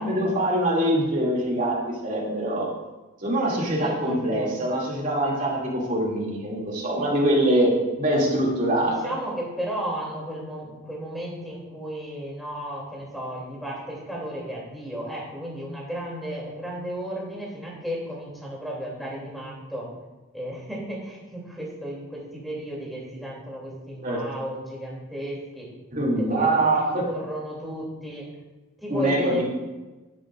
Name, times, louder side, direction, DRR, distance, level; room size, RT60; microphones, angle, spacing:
voice 1, 0.0-2.7 3.2-7.7 8.0-9.1 24.0-24.2 25.9-27.0 28.9-29.4, right 1 dB, 40° right, -4 dB, 2.8 m, -24 dB
voice 2, 3.8-4.5 8.8-19.9 20.3-25.7 26.2-28.3 28.8-29.4, equal, ahead, -4 dB, 3.1 m, -34 dB
11.5 x 11.0 x 2.6 m, 1.1 s
head